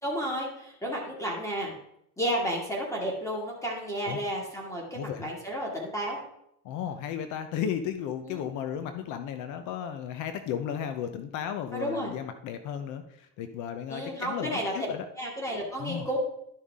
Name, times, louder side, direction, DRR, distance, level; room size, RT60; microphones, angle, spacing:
voice 1, 0.0-1.7 2.2-6.2 8.2-8.4 11.7-12.1 13.9-14.7 15.2-16.2, equal, 10° left, -2 dB, 2.4 m, -32 dB
voice 2, 4.9-5.3 6.6-15.1 15.8-16.1, left 8 dB, 70° left, 8 dB, 0.9 m, -34 dB
12.0 x 5.6 x 3.7 m, 0.76 s
cardioid pair, 125°, 31 cm